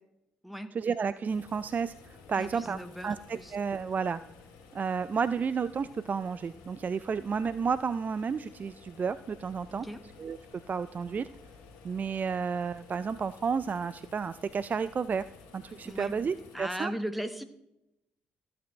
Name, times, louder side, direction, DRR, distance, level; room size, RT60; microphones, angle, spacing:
voice 1, 0.7-4.2 4.7-9.9 10.2-10.4 10.7-11.3 11.8-15.3 15.5-16.9, right 6 dB, 40° right, 15 dB, 0.4 m, -31 dB
sound 1, 1.3-16.6, left 5 dB, 85° left, 2.1 m, -53 dB
voice 2, 2.4-3.6 9.7-10.0 15.8-16.1 16.5-17.4, equal, ahead, 10 dB, 1.2 m, -37 dB
14.0 x 8.7 x 3.2 m, 0.86 s
hypercardioid pair, 55°, 4 cm